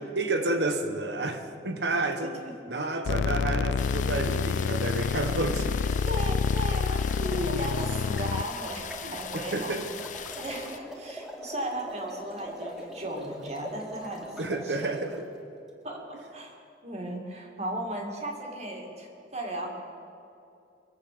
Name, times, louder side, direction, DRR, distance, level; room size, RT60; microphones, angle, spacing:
voice 1, 0.0-2.4 2.7-6.0 7.3-7.7 9.0-9.9 14.4-15.3, right 2 dB, 70° right, 7 dB, 1.3 m, -31 dB
sound 1, 3.1-8.4, left 5 dB, 85° left, 0.4 m, -28 dB
sound 2, 3.8-10.8, left 8 dB, 45° left, 0.7 m, -40 dB
voice 2, 6.0-9.8 10.4-15.0 15.8-16.6 16.8-19.7, right 1 dB, 40° right, 1 dB, 2.2 m, -36 dB
sound 3, 6.9-15.2, equal, ahead, 2.0 m, -43 dB
22.5 x 8.2 x 6.8 m, 2.6 s
head